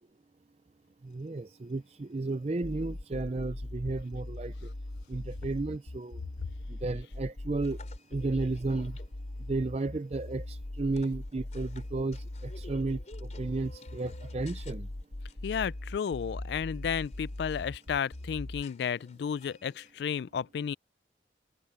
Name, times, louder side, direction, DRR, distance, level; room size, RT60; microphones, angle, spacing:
voice 1, 1.0-4.7 5.1-6.2 6.7-7.8 8.1-9.0 9.5-14.9, right 3 dB, 35° right, 0.4 m, -33 dB
sound 1, 1.1-19.9, left 2 dB, 40° left, 4.3 m, -58 dB
sound 2, 2.6-18.6, left 1 dB, 55° left, 1.0 m, -40 dB
voice 2, 15.4-20.7, left 7 dB, 70° left, 0.3 m, -33 dB
head